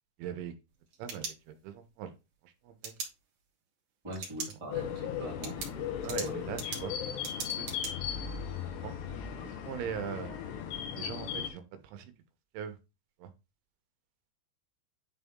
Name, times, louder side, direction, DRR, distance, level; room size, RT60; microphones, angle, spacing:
voice 1, 0.2-0.5 1.0-2.1 2.4-2.9 6.0-7.0 7.6-8.1 8.5-9.0 9.4-10.4 11.0-12.1 12.5-12.8 13.2-13.3, right 8 dB, 80° right, 3.3 m, -41 dB
sound 1, 0.7-1.9 2.8-3.1 4.1-4.5 4.9-5.0 5.4-7.9, right 5 dB, 50° right, 3.4 m, -40 dB
voice 2, 4.0-5.6 6.2-6.4, equal, 10° right, 1.5 m, -42 dB
sound 2, 4.7-11.5, left 8 dB, 70° left, 2.9 m, -37 dB
10.5 x 4.1 x 3.6 m
omnidirectional pair, 5.4 m